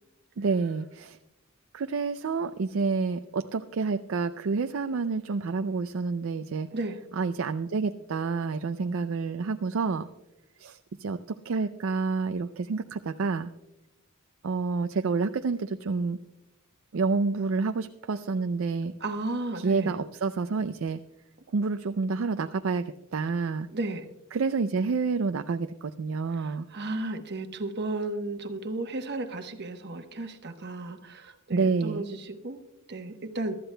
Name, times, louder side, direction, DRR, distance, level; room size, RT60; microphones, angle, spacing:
voice 1, 0.4-1.2 1.7-6.7 7.1-10.1 10.6-13.5 14.4-16.2 16.9-18.9 19.6-21.0 21.5-23.7 24.3-26.7 31.5-32.0, right 4 dB, 70° right, 9 dB, 0.4 m, -28 dB
voice 2, 19.0-19.9 23.7-24.0 26.4-32.6 32.9-33.5, right 2 dB, 50° right, 6 dB, 1.1 m, -34 dB
22.5 x 13.0 x 2.2 m, 0.95 s
head